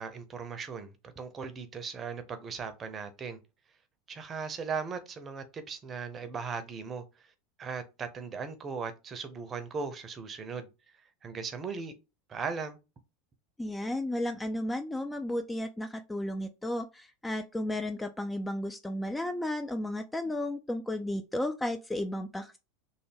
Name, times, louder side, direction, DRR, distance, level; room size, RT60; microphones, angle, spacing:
voice 1, 0.0-3.4 4.1-7.0 7.6-10.7 11.2-11.9 12.3-12.8, right 5 dB, 30° right, 0.6 m, -38 dB
voice 2, 13.6-22.6, left 1 dB, 10° left, 0.3 m, -33 dB
3.3 x 2.2 x 3.3 m
figure-of-eight pair, 80°, 0 cm